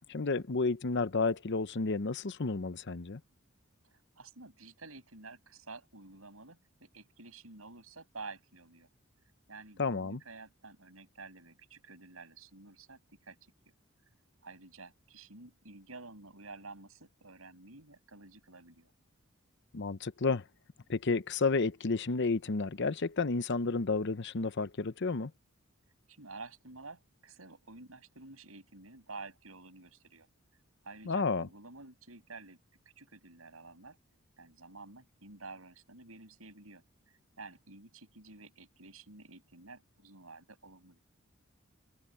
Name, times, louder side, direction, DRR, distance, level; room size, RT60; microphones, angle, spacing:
voice 1, 0.1-3.2 9.8-10.2 19.7-20.4 20.9-25.3 31.1-31.5, left 4 dB, 55° left, 0.8 m, -31 dB
voice 2, 3.9-8.9 9.5-13.4 14.4-18.9 26.1-30.3 30.8-32.6 33.0-34.0 34.4-41.0, right 3 dB, 85° right, 7.2 m, -51 dB
head